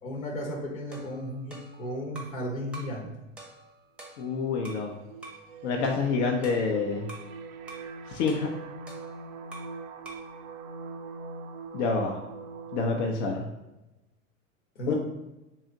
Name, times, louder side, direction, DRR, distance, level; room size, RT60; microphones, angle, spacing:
voice 1, 0.0-3.1 14.7-14.9, equal, 85° left, -1 dB, 1.1 m, -35 dB
sound 1, 0.9-2.4 2.7-3.0 3.4-4.9 5.2-5.5 5.8-7.3 7.7-7.9 8.3-9.8 10.0-10.3, right 2 dB, 5° right, 0.6 m, -47 dB
sound 2, 4.1-13.1, right 4 dB, 75° right, 0.5 m, -42 dB
voice 2, 4.2-4.9 5.6-7.1 8.1-8.5 11.7-12.2 12.7-13.5 14.9-15.0, left 4 dB, 60° left, 0 dB, 0.7 m, -27 dB
3.2 x 2.8 x 3.7 m, 1.0 s
hypercardioid pair, 95°, 40 cm